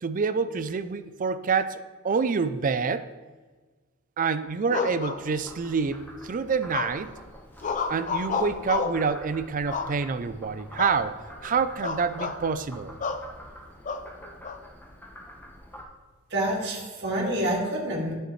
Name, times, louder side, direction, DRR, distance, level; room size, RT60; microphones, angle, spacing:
voice 1, 0.0-3.1 4.2-7.1 7.9-12.9, right 5 dB, 40° right, 12 dB, 0.4 m, -27 dB
sound 1, 4.7-5.7 6.7-7.2 7.6-9.1 9.7-10.3 10.8-11.0 11.3-11.5 11.8-12.4 13.0-13.3 13.9-14.6, left 4 dB, 40° left, 0.5 m, -30 dB
Frog, 5.2-15.8, equal, 10° left, 1.1 m, -46 dB
voice 2, 16.3-18.1, right 1 dB, 55° right, -4 dB, 2.2 m, -27 dB
10.5 x 6.5 x 3.2 m, 1.3 s
head